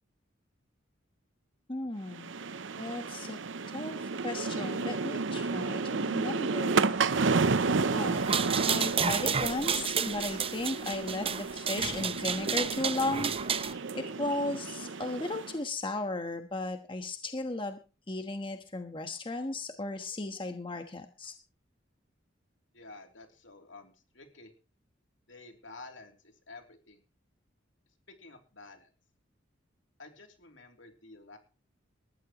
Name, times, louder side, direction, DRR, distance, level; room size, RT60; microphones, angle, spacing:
voice 1, 1.7-2.3 2.8-3.4 3.7-6.9 7.9-8.4 8.6-13.3 13.6-17.8 18.1-21.3, left 2 dB, 25° left, 6 dB, 1.3 m, -35 dB
sound 1, 2.1-15.6, right 4 dB, 70° right, 0.8 m, -32 dB
sound 2, 8.2-13.7, right 7 dB, 30° right, 0.8 m, -31 dB
voice 2, 22.7-24.5 25.3-27.0 28.1-28.9 30.0-31.4, left 3 dB, 70° left, 4 dB, 3.2 m, -51 dB
20.0 x 14.0 x 3.1 m, 0.34 s
head